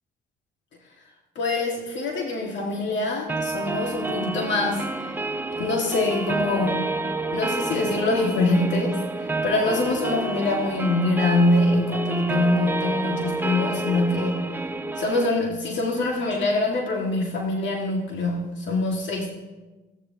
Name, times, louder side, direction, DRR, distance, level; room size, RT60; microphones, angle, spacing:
voice 1, 1.4-5.1 5.5-6.9 7.3-14.5 15.0-19.3, left 2 dB, 65° left, -1 dB, 1.8 m, -24 dB
sound 1, 3.3-15.3, right 3 dB, 10° right, 0.7 m, -29 dB
15.5 x 15.5 x 2.8 m, 1.2 s
cardioid pair, 90°, 20 cm